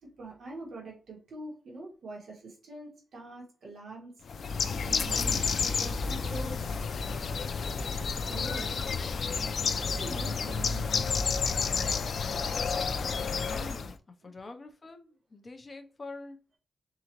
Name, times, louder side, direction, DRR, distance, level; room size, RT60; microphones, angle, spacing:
voice 1, 0.0-4.1 4.9-6.8 8.2-8.7 9.9-12.1 14.2-14.3, right 2 dB, 65° right, 1.7 m, -44 dB
Bird, 4.3-13.9, left 5 dB, 55° left, 0.5 m, -30 dB
voice 2, 13.4-14.0 14.2-16.4, left 3 dB, 30° left, 0.8 m, -45 dB
4.1 x 3.8 x 3.1 m
wide cardioid pair, 145°, 0 cm